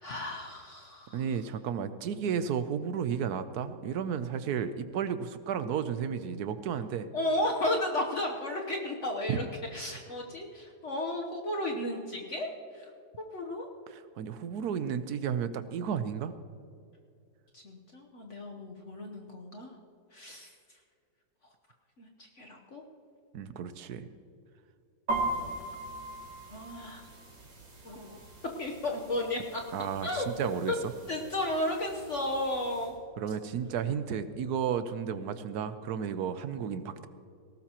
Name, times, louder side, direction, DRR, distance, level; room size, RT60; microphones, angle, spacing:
voice 1, 0.0-1.2 7.1-9.4 9.7-12.9 13.3-13.7 17.5-19.7 20.1-20.5 22.0-22.8 26.5-27.0 27.8-28.2 28.6-29.6 30.0-30.3 30.7-30.8 31.1-32.9, left 1 dB, 45° left, 1 dB, 1.3 m, -33 dB
voice 2, 1.1-7.1 9.3-9.4 13.9-16.3 23.3-24.1 29.7-30.9 33.2-37.1, right 7 dB, 70° right, 11 dB, 1.1 m, -33 dB
sound 1, 25.1-32.9, right 2 dB, 90° right, 3.2 m, -40 dB
19.0 x 17.5 x 3.0 m, 2.4 s
omnidirectional pair, 1.9 m